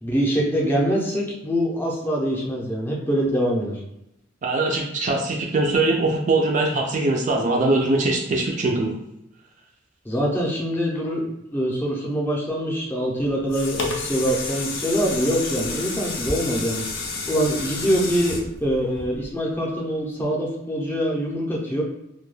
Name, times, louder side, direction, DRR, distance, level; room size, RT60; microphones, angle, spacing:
voice 1, 0.0-3.8 10.0-11.2 11.5-16.8 17.3-21.8, equal, 10° left, -2 dB, 0.5 m, -24 dB
voice 2, 4.4-9.0, right 2 dB, 40° right, 0 dB, 0.4 m, -22 dB
sound 1, 13.2-19.5 20.0-20.1, left 3 dB, 80° left, 0.5 m, -30 dB
2.2 x 2.2 x 3.1 m, 0.84 s
head